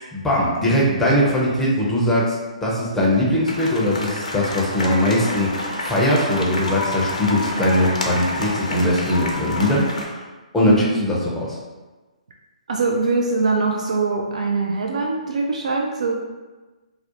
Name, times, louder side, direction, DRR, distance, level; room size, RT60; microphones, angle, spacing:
voice 1, 0.1-5.5 5.8-10.2 10.5-11.6, left 1 dB, 5° left, -5 dB, 0.5 m, -20 dB
sound 1, 3.5-10.0, left 2 dB, 70° left, 0.5 m, -28 dB
voice 2, 12.7-16.2, right 3 dB, 65° right, 0 dB, 0.3 m, -22 dB
2.3 x 2.0 x 2.8 m, 1.2 s
figure-of-eight pair, 130°, 4 cm